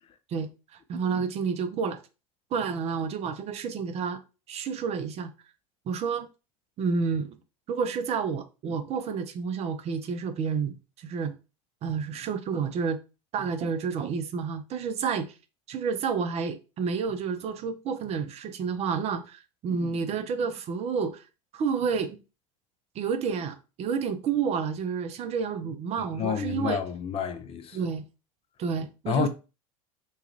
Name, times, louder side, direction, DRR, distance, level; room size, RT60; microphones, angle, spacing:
voice 1, 0.9-2.0 2.5-4.2 4.5-5.3 5.9-6.3 6.8-7.4 7.7-11.3 11.8-13.0 13.3-15.3 15.7-21.2 21.5-22.2 23.0-26.8 27.7-28.0 28.6-29.3, right 6 dB, 35° right, 0.5 m, -30 dB
voice 2, 26.2-27.8 29.1-29.3, left 6 dB, 30° left, 0.5 m, -29 dB
3.0 x 2.3 x 2.9 m
hypercardioid pair, 80°, 18 cm